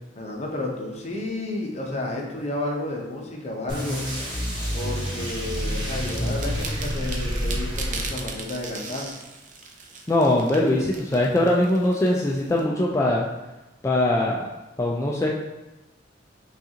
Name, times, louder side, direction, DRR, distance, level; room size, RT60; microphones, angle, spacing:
voice 1, 0.2-4.0 4.7-9.1, left 1 dB, 40° left, 0 dB, 0.7 m, -31 dB
sound 1, 3.7-8.5, equal, 25° right, 1.2 m, -28 dB
sound 2, 5.8-12.6, right 4 dB, 45° right, 0.5 m, -39 dB
voice 2, 10.1-13.2 13.8-14.4 14.8-15.3, left 1 dB, 15° left, -3 dB, 0.3 m, -21 dB
5.3 x 2.4 x 2.8 m, 1.0 s
head